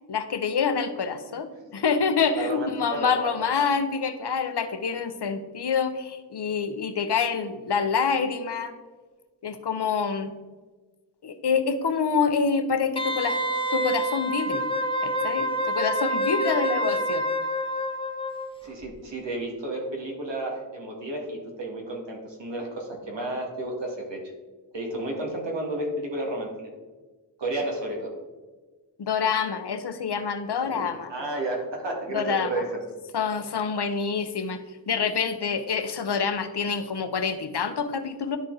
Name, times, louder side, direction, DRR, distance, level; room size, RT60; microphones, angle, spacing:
voice 1, 0.1-8.7 9.4-10.3 11.2-14.6 15.0-17.2 29.0-31.1 32.1-32.6 33.1-38.4, left 5 dB, 65° left, 8 dB, 0.9 m, -27 dB
voice 2, 2.3-3.3 18.6-24.2 24.7-26.7 27.4-28.1 30.6-32.9, right 1 dB, 85° right, -1 dB, 2.0 m, -32 dB
Wind instrument woodwind instrument, 13.0-18.5 18.8-18.9, equal, 10° left, 0.7 m, -27 dB
11.0 x 4.3 x 3.9 m, 1.3 s
wide cardioid pair, 65°, 43 cm